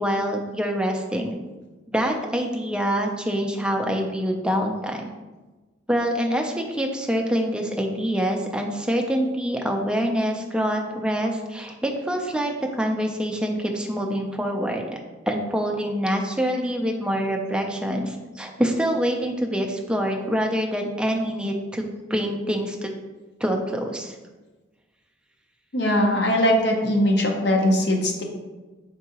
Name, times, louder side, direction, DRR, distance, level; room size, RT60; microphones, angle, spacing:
voice 1, 0.0-1.4 1.9-5.1 5.9-14.8 15.3-22.9 23.4-24.1, equal, 5° right, 1 dB, 0.3 m, -25 dB
voice 2, 25.7-28.2, left 1 dB, 55° left, 1 dB, 0.6 m, -20 dB
4.5 x 3.8 x 2.8 m, 1.2 s
head